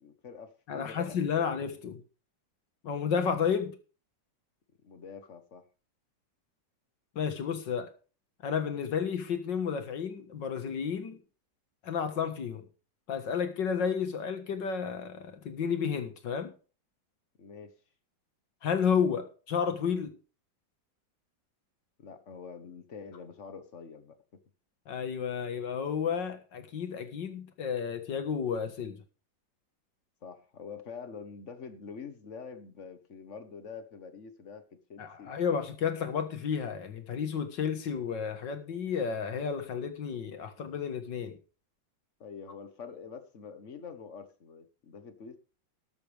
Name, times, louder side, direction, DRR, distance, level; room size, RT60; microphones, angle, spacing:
voice 1, 0.0-1.7 4.8-5.6 17.4-17.8 22.0-24.2 30.2-35.3 42.2-45.4, left 6 dB, 45° left, 9 dB, 1.5 m, -46 dB
voice 2, 0.7-2.0 2.8-3.7 7.2-7.9 8.4-11.2 11.8-12.6 13.1-16.5 18.6-20.1 24.9-29.0 35.0-41.3, left 7 dB, 70° left, 8 dB, 2.2 m, -31 dB
13.5 x 12.5 x 3.5 m, 0.36 s
omnidirectional pair, 2.0 m